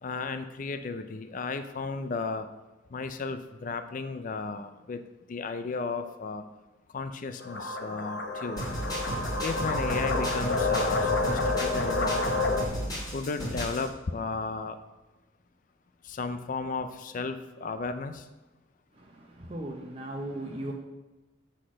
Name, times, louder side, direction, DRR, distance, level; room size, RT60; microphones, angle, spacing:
voice 1, 0.0-2.5 2.9-5.0 5.3-6.4 6.9-8.6 9.4-12.6 13.1-14.8 16.0-18.3, left 4 dB, 45° left, 0.4 m, -34 dB
sound 1, 7.4-12.6, left 3 dB, 65° left, 0.9 m, -29 dB
sound 2, 8.6-13.9, equal, 20° left, 2.0 m, -34 dB
voice 2, 18.9-20.7, right 1 dB, 30° right, 0.7 m, -37 dB
7.7 x 4.3 x 6.2 m
head